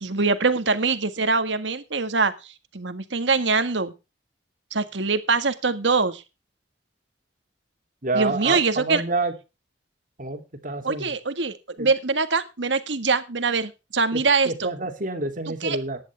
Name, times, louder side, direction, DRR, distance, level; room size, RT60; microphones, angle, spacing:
voice 1, 0.0-3.9 4.7-6.2 8.1-9.0 10.8-14.7 15.5-15.8, right 4 dB, 80° right, 10 dB, 1.7 m, -23 dB
voice 2, 8.0-9.3 10.2-11.1 11.8-11.9 14.1-16.0, right 3 dB, 45° right, 5 dB, 2.8 m, -28 dB
15.5 x 10.5 x 3.4 m, 0.29 s
head